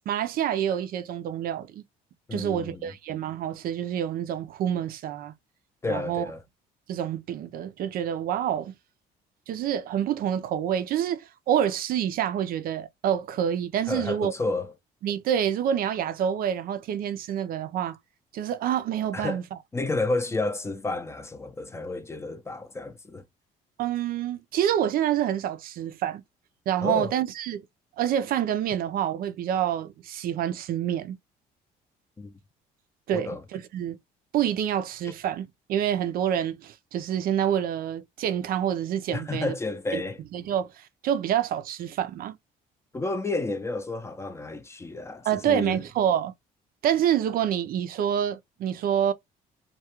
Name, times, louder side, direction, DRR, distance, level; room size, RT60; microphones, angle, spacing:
voice 1, 0.1-1.8 2.3-5.3 5.9-6.3 6.9-8.7 9.5-14.3 15.0-18.0 18.3-19.4 23.8-26.2 26.7-27.6 28.0-31.2 33.1-34.0 34.3-39.5 39.9-40.0 40.3-42.4 45.2-46.3 46.8-49.1, right 10 dB, 60° right, 0.4 m, -27 dB
voice 2, 2.3-2.9 5.8-6.4 13.9-14.7 19.1-19.4 19.7-23.2 26.8-27.1 32.2-32.3 33.1-33.4 35.0-35.1 39.1-40.2 42.9-45.8, left 2 dB, 15° left, 0.5 m, -31 dB
2.3 x 2.2 x 2.8 m
cardioid pair, 110°, 17 cm